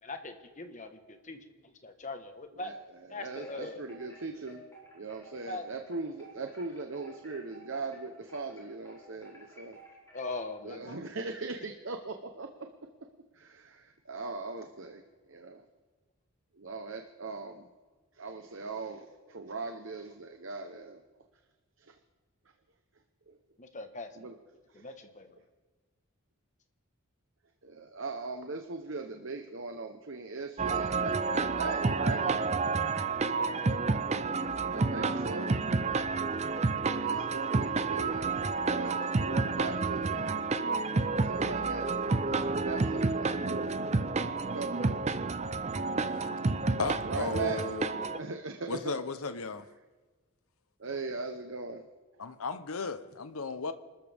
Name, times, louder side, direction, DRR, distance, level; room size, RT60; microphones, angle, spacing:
voice 1, 0.0-2.7 3.1-3.8 5.5-5.7 10.1-11.0 23.6-24.3 24.7-25.4 33.4-34.0 46.2-46.5, left 2 dB, 35° left, 7 dB, 1.3 m, -42 dB
voice 2, 3.1-4.7 4.9-9.8 10.6-12.5 13.3-15.0 15.3-15.6 16.5-17.7 18.1-21.0 21.8-21.9 23.3-23.4 24.2-24.4 24.7-24.8 27.6-32.3 34.3-34.4 34.7-35.7 36.9-40.5 41.2-42.0 42.3-43.8 44.5-44.9 45.8-45.9 47.0-47.6 48.2-48.9 50.8-51.9, right 3 dB, 60° right, 5 dB, 0.9 m, -39 dB
Wind chime, 3.2-10.6, right 2 dB, 15° left, 4.9 m, -54 dB
sound 1, 30.6-48.2, right 4 dB, 30° right, 0.5 m, -30 dB
voice 3, 46.8-47.9 48.7-49.7 52.2-53.7, left 3 dB, 80° left, 11 dB, 0.8 m, -35 dB
26.0 x 13.5 x 3.5 m, 1.3 s
head